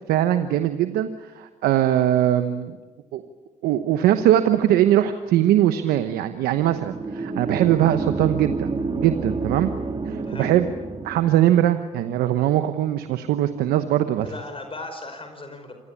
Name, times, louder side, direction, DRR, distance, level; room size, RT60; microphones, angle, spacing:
voice 1, 0.1-2.8 3.1-3.2 3.6-8.7 9.0-9.7 10.1-10.7 11.0-14.3, right 12 dB, 85° right, 10 dB, 1.1 m, -21 dB
sound 1, 6.5-11.5, right 3 dB, 35° right, 3.2 m, -29 dB
voice 2, 14.2-15.7, left 2 dB, 35° left, 6 dB, 5.2 m, -37 dB
27.0 x 20.0 x 8.5 m, 1.2 s
supercardioid pair, 50°, 15 cm